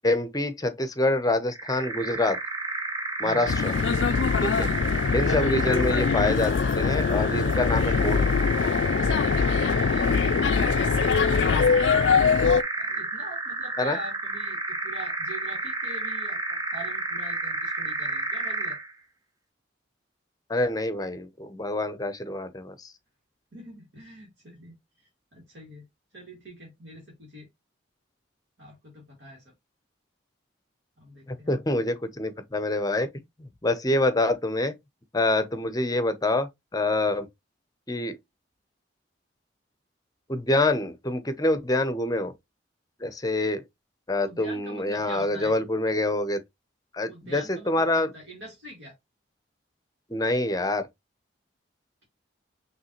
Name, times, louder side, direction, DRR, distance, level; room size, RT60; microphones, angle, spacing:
voice 1, 0.0-2.4 3.2-3.7 4.4-4.7 5.1-8.3 13.8-14.0 20.5-22.9 31.3-33.1 33.4-34.7 35.1-37.3 37.9-38.2 40.3-42.3 43.0-43.6 44.1-46.4 46.9-48.1 50.1-50.9, left 2 dB, 20° left, 0.7 m, -26 dB
sound 1, 1.5-18.9, right 2 dB, 20° right, 0.7 m, -31 dB
voice 2, 3.2-3.5 4.5-4.7 5.4-5.5 9.3-18.8 23.5-25.9 26.1-27.5 28.6-29.5 31.0-31.9 44.2-45.6 47.1-48.9, right 1 dB, 65° right, 2.3 m, -44 dB
sound 2, 3.5-12.6, left 6 dB, 70° left, 0.4 m, -23 dB
5.3 x 3.2 x 3.0 m
head